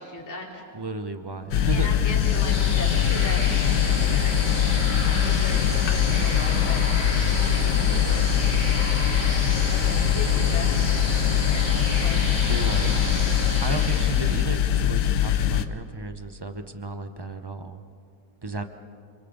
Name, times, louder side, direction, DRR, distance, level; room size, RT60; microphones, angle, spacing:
voice 1, 0.0-0.6 1.7-3.4 3.7-4.6 5.0-6.8 7.5-8.3 9.7-10.7 11.2-12.6, left 2 dB, 10° left, -3 dB, 2.6 m, -38 dB
voice 2, 0.7-1.9 9.8-10.2 12.5-17.8 18.4-18.6, right 3 dB, 25° right, 8 dB, 0.6 m, -34 dB
sound 1, 1.5-15.7, left 10 dB, 65° left, 1.2 m, -22 dB
sound 2, 2.0-14.8, left 1 dB, 35° left, 3.4 m, -31 dB
28.0 x 27.0 x 4.0 m, 2.2 s
omnidirectional pair, 1.8 m